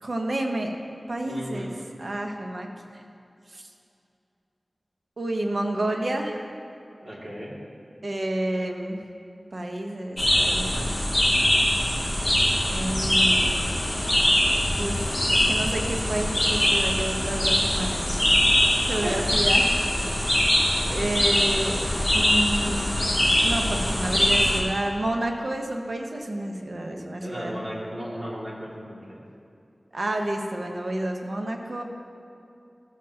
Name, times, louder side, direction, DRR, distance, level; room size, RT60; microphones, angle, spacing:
voice 1, 0.0-0.7 1.1-1.7 2.0-3.0 3.5-3.6 5.2-6.5 8.0-9.0 9.5-10.9 12.7-13.5 14.8-18.2 18.8-19.7 20.9-21.8 22.1-22.9 23.3-27.5 29.9-31.8, right 1 dB, 65° right, 2 dB, 0.9 m, -30 dB
voice 2, 1.2-1.8 7.0-7.6 19.0-19.3 26.9-29.2, equal, 50° right, -6 dB, 2.3 m, -35 dB
sound 1, 10.2-24.6, left 1 dB, 15° left, 1.9 m, -22 dB
14.5 x 7.6 x 2.9 m, 2.6 s
wide cardioid pair, 50°, 0 cm